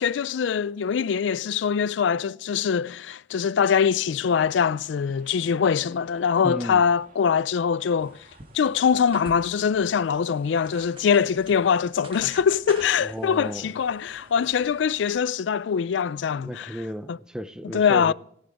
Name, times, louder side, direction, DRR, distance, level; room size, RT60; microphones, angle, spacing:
voice 1, 0.0-8.2 8.5-16.8 17.1-17.2 17.7-18.1, left 7 dB, 75° left, 0.4 m, -23 dB
sound 1, 4.4-15.1, right 2 dB, 45° right, 1.7 m, -56 dB
voice 2, 6.4-6.8 13.0-13.7 16.4-18.1, equal, 5° right, 0.5 m, -34 dB
sound 2, 8.0-15.1, right 2 dB, 30° right, 1.3 m, -48 dB
21.0 x 7.7 x 3.5 m
head